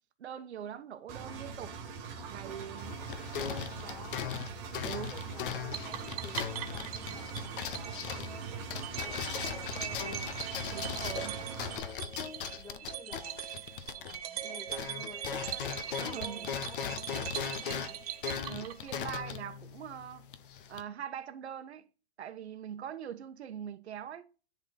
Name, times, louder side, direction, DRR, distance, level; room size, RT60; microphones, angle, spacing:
voice 1, 0.2-1.8 2.3-3.0 3.5-3.6 4.8-5.1 10.7-11.4 16.0-16.5 18.5-20.3 20.7-21.8 22.2-24.2, right 9 dB, 75° right, 1.3 m, -42 dB
Engine, 1.1-11.8, right 5 dB, 10° right, 0.4 m, -42 dB
voice 2, 2.7-4.4 4.9-11.8 12.6-13.4 13.9-18.2, left 2 dB, 10° left, 2.3 m, -52 dB
sound 1, 2.8-14.4 14.7-20.8, left 8 dB, 50° left, 1.0 m, -39 dB
sound 2, 5.7-19.2, right 11 dB, 35° right, 0.9 m, -41 dB
10.5 x 4.0 x 4.2 m
hypercardioid pair, 170°, 33 cm